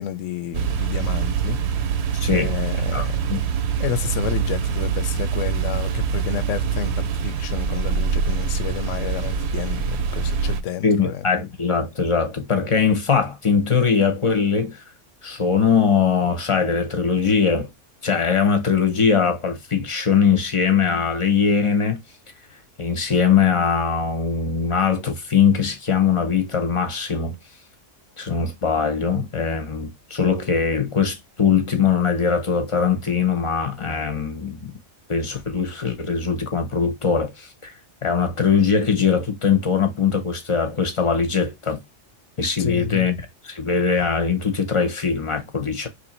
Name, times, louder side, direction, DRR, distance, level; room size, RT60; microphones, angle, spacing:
voice 1, 0.0-1.6 2.3-3.2 3.8-11.2 42.6-43.1, left 11 dB, 80° left, 0.9 m, -30 dB
sound 1, 0.5-10.6, right 7 dB, 65° right, 0.8 m, -24 dB
voice 2, 2.1-2.5 2.9-3.4 10.8-14.8 15.2-17.7 18.0-22.0 22.8-27.4 28.2-34.7 35.1-37.7 38.0-41.8 42.4-43.2 43.4-45.9, left 6 dB, 35° left, 0.6 m, -21 dB
3.1 x 2.6 x 4.2 m
omnidirectional pair, 1.3 m